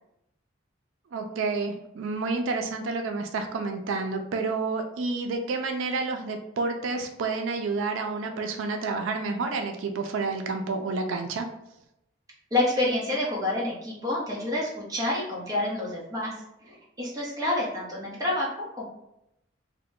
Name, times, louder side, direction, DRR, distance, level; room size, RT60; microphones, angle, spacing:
voice 1, 1.1-11.5, right 3 dB, 90° right, 5 dB, 0.4 m, -29 dB
voice 2, 12.5-16.4 16.6-18.8, left 1 dB, 20° right, -5 dB, 0.8 m, -28 dB
2.8 x 2.1 x 3.5 m, 0.82 s
head